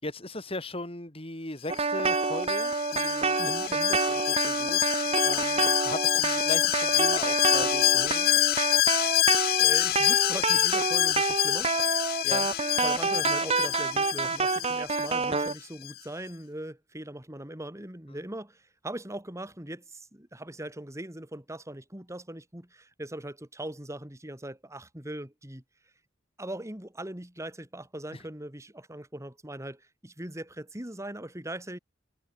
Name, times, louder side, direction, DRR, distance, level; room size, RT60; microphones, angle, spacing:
voice 1, 0.0-3.5 3.9-8.3 12.2-12.5 18.1-18.2 28.1-28.2, left 2 dB, 30° left, 5.6 m, -38 dB
sound 1, 1.7-15.5, right 4 dB, 35° right, 1.4 m, -28 dB
Alarm, 2.1-15.5 15.9-16.0, left 15 dB, 55° left, 0.4 m, -27 dB
voice 2, 3.4-3.9 9.0-12.0 12.8-25.6 26.4-31.8, right 1 dB, 15° right, 2.7 m, -40 dB
head